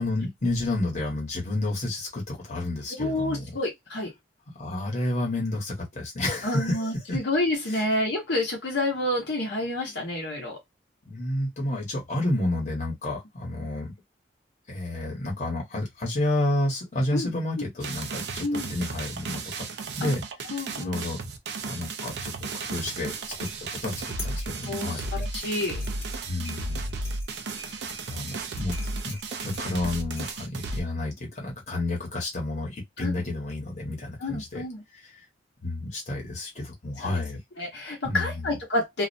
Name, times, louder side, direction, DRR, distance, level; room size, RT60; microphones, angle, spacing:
voice 1, 0.0-3.4 4.5-7.2 11.1-13.9 14.7-19.7 20.0-20.2 20.5-21.2 21.6-23.1 23.4-23.5 23.8-25.1 26.3-26.9 27.5-28.7 29.0-34.6 35.0-35.1 35.6-37.4 38.0-38.3, left 1 dB, 40° left, 1.0 m, -30 dB
voice 2, 3.0-4.1 6.4-10.6 17.1-17.3 18.4-18.7 20.0-20.1 20.5-21.0 24.7-25.8 28.3-28.4 33.0-33.1 34.2-34.8 37.0-37.2 37.6-39.1, left 1 dB, 65° left, 0.8 m, -29 dB
sound 1, 17.8-30.8, right 3 dB, 60° right, 0.4 m, -34 dB
sound 2, 23.2-30.8, left 1 dB, 15° left, 0.9 m, -46 dB
2.4 x 2.1 x 2.5 m
head